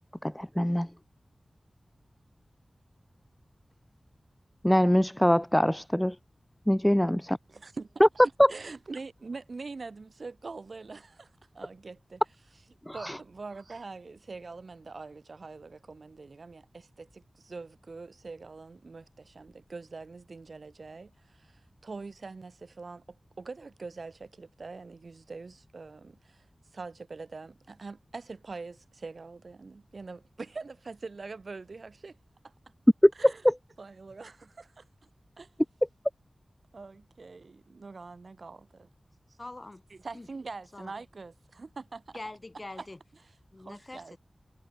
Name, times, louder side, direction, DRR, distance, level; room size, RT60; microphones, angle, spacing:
voice 1, 0.2-0.9 4.6-6.2 6.7-7.4 8.4-8.5 12.9-13.2 33.0-33.1 33.4-33.5, equal, 10° left, 0.4 m, -23 dB
voice 2, 7.5-12.2 12.9-26.5 26.7-32.2 32.4-32.5 33.2-33.4 33.8-34.8 35.4-35.5 36.7-38.9 39.9-42.2 42.8-42.9 43.6-44.2, right 4 dB, 70° right, 1.8 m, -44 dB
voice 3, 39.4-39.8 40.1-40.3 40.7-40.9 42.1-43.0 43.5-44.2, left 2 dB, 35° left, 5.2 m, -43 dB
cardioid pair, 50°, 0 cm